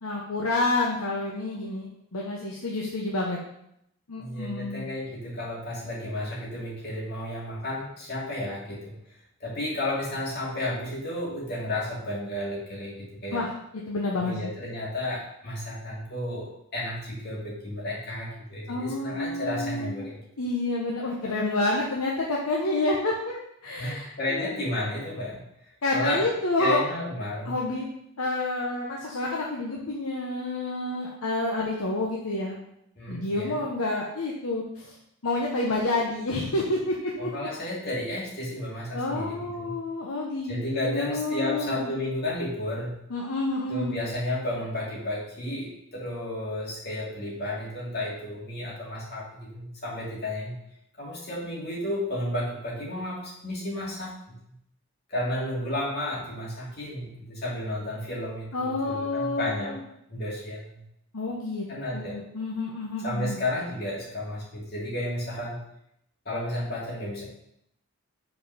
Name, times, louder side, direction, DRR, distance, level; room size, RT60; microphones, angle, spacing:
voice 1, 0.0-3.4 4.1-4.9 13.3-14.5 18.7-20.0 20.4-24.6 25.8-26.8 27.5-27.9 28.2-32.6 33.1-34.9 35.2-37.3 38.9-40.6 40.8-41.9 43.1-44.0 58.5-59.8 61.1-61.7 61.9-63.4, left 2 dB, 85° left, -2 dB, 0.9 m, -29 dB
voice 2, 4.2-8.9 9.4-13.5 14.2-20.2 23.8-25.5 25.9-26.3 26.6-27.6 33.0-33.6 37.2-39.8 40.5-43.0 43.7-50.6 51.0-54.3 55.1-59.7 60.1-60.8 61.7-62.2 63.0-65.6 66.2-67.2, left 1 dB, 45° left, -6 dB, 2.4 m, -32 dB
5.5 x 4.6 x 5.5 m, 0.77 s
head